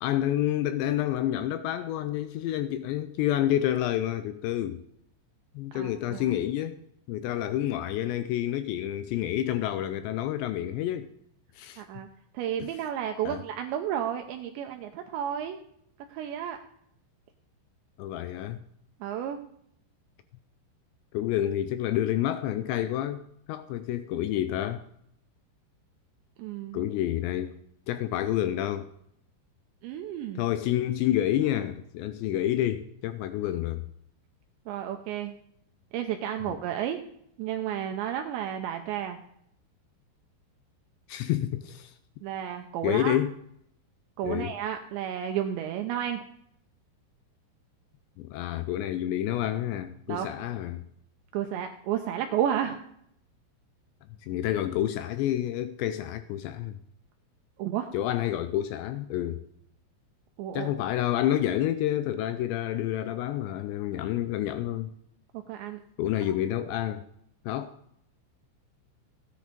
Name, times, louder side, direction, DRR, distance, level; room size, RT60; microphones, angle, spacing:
voice 1, 0.0-4.8 5.6-6.8 7.1-11.1 11.6-12.1 12.6-12.7 13.3-13.4 18.0-18.6 21.1-23.2 23.5-24.8 26.7-27.6 27.9-28.9 30.4-33.8 36.5-36.6 41.1-41.9 42.8-43.3 44.2-44.5 48.2-50.9 54.2-56.8 57.9-59.4 60.5-64.9 66.0-67.0 67.5-67.8, left 12 dB, 85° left, 2.6 m, -29 dB
voice 2, 5.7-6.4 11.8-12.1 12.3-15.6 16.1-16.6 19.0-19.4 26.4-26.9 29.8-30.4 34.7-35.3 35.9-37.0 37.4-39.2 42.2-43.2 44.2-46.2 50.1-50.5 51.3-52.8 57.6-57.9 60.4-60.7 65.3-65.8, right 10 dB, 80° right, 2.8 m, -32 dB
16.0 x 10.0 x 5.1 m
omnidirectional pair, 5.7 m